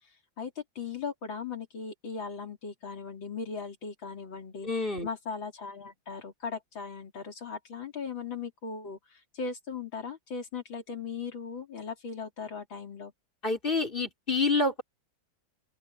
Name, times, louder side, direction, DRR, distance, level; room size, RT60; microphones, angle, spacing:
voice 1, 0.4-4.7 5.0-13.1, left 5 dB, 70° left, 4.1 m, -38 dB
voice 2, 4.6-5.1 13.4-14.8, left 3 dB, 25° left, 4.2 m, -27 dB
open air
omnidirectional pair, 2.2 m